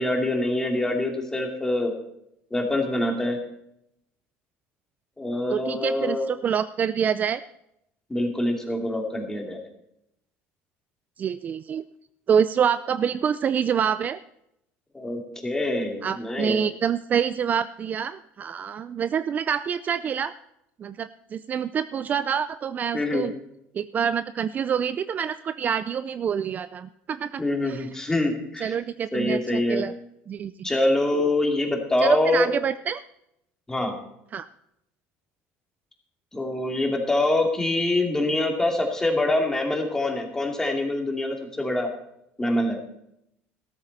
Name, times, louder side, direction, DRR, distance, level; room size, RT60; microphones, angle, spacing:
voice 1, 0.0-1.9 2.5-3.4 5.2-6.3 8.1-9.6 14.9-16.6 22.9-23.3 27.4-28.7 29.1-29.8 30.6-32.5 33.7-34.0 36.3-41.9 42.4-42.8, left 1 dB, 10° left, 2 dB, 2.7 m, -25 dB
voice 2, 5.5-7.4 11.2-11.8 12.3-14.2 16.0-20.3 20.8-23.3 23.7-27.9 28.6-29.9 30.3-30.7 32.0-33.0 34.3-34.5, right 7 dB, 35° right, 13 dB, 0.4 m, -26 dB
14.0 x 13.0 x 4.2 m, 0.79 s
cardioid pair, 125°, 5 cm